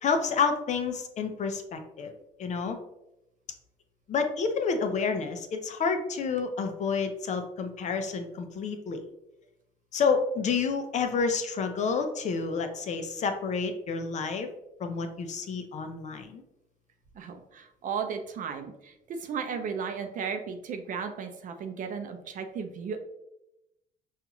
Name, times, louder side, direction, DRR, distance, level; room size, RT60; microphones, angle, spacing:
voice 1, 0.0-2.1 2.4-2.8 4.1-9.0 9.9-14.5 14.8-16.4, left 5 dB, 45° left, 6 dB, 0.5 m, -29 dB
voice 2, 17.1-23.0, right 6 dB, 50° right, 7 dB, 0.6 m, -35 dB
5.4 x 2.4 x 2.9 m, 0.87 s
cardioid pair, 110°, 17 cm